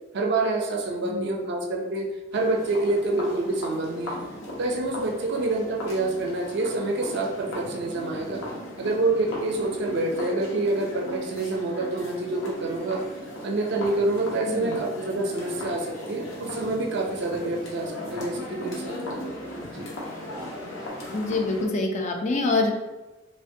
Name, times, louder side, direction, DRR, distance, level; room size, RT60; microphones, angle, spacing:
voice 1, 0.1-2.1 2.3-4.2 4.6-8.4 8.8-13.0 13.4-19.3 19.7-19.9, right 2 dB, 60° right, 2 dB, 0.5 m, -27 dB
voice 2, 1.0-1.5 14.5-14.8 21.1-22.7, left 3 dB, 35° left, 2 dB, 0.4 m, -26 dB
sound 1, 2.3-21.7, left 1 dB, 70° left, 0.7 m, -37 dB
3.3 x 2.1 x 2.6 m, 1.1 s
head